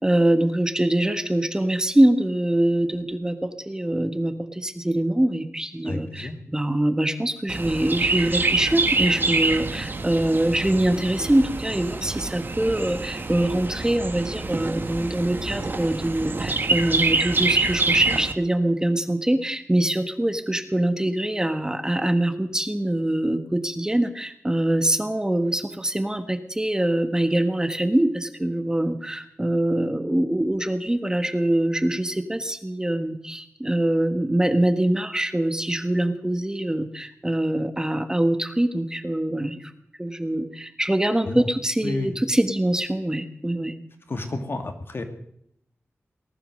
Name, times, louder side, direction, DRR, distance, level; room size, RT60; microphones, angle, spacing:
voice 1, 0.0-39.7 40.0-43.7, right 1 dB, 15° right, 9 dB, 1.4 m, -24 dB
voice 2, 5.8-6.4 41.3-41.5 41.8-42.1 44.1-45.0, left 2 dB, 55° left, 6 dB, 2.3 m, -30 dB
Chirp tweet, 7.5-18.3, right 3 dB, 45° right, 1.3 m, -26 dB
19.0 x 11.5 x 6.5 m, 0.73 s
wide cardioid pair, 90°, 5 cm